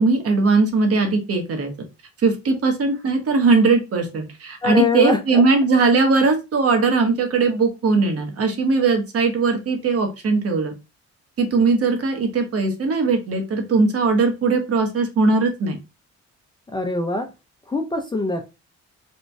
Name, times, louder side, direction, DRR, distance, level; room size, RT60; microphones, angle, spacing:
voice 1, 0.0-1.7 2.2-10.7 11.4-15.8, right 4 dB, 50° right, 5 dB, 0.9 m, -19 dB
voice 2, 4.6-5.4 16.7-17.3 17.7-18.4, left 3 dB, 15° left, 4 dB, 0.4 m, -22 dB
3.0 x 2.2 x 2.5 m, 0.26 s
cardioid pair, 90°, 30 cm